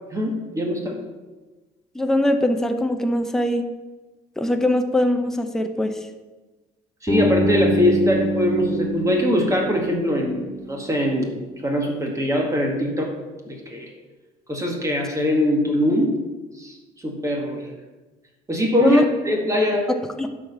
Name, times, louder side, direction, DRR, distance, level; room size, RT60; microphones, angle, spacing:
voice 1, 0.1-1.0 7.0-11.3 11.6-13.1 13.4-13.9 14.5-16.2 16.6-16.8 17.0-17.7 18.5-19.9, left 1 dB, 20° right, 1 dB, 1.9 m, -22 dB
voice 2, 1.9-3.7 4.4-6.0 18.8-19.0 20.2-20.3, left 1 dB, 5° left, 5 dB, 0.8 m, -21 dB
Bass guitar, 7.1-11.0, equal, 20° left, 2.4 m, -25 dB
12.0 x 4.9 x 5.6 m, 1.2 s
cardioid pair, 110°, 17 cm